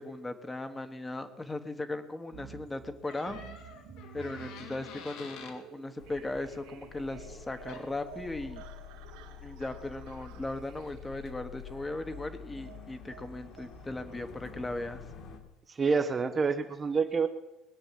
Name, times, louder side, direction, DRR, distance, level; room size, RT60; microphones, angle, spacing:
voice 1, 0.0-3.4 4.1-8.7 9.4-15.0, left 2 dB, 10° left, 9 dB, 1.3 m, -38 dB
sound 1, 2.3-14.1, right 10 dB, 90° right, 2.4 m, -52 dB
Door, 3.0-5.6 7.4-7.5 7.7-8.1, left 6 dB, 70° left, 2.9 m, -47 dB
sound 2, 6.0-15.4, left 6 dB, 50° left, 2.4 m, -48 dB
voice 2, 15.7-17.3, right 5 dB, 20° right, 8 dB, 0.8 m, -27 dB
20.5 x 8.8 x 7.6 m, 0.99 s
cardioid pair, 140°, 0 cm